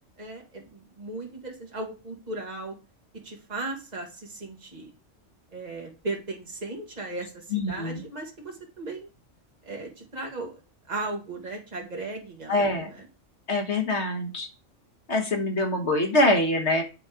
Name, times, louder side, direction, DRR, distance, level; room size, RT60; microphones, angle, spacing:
voice 1, 0.2-2.7 3.2-4.9 5.5-9.1 9.6-10.5 10.9-13.1, right 2 dB, 35° right, 0 dB, 1.9 m, -36 dB
voice 2, 7.5-8.0 12.5-12.9 13.5-14.5 15.1-16.8, left 1 dB, 60° left, 4 dB, 1.8 m, -24 dB
8.8 x 4.2 x 4.9 m, 0.31 s
omnidirectional pair, 1.3 m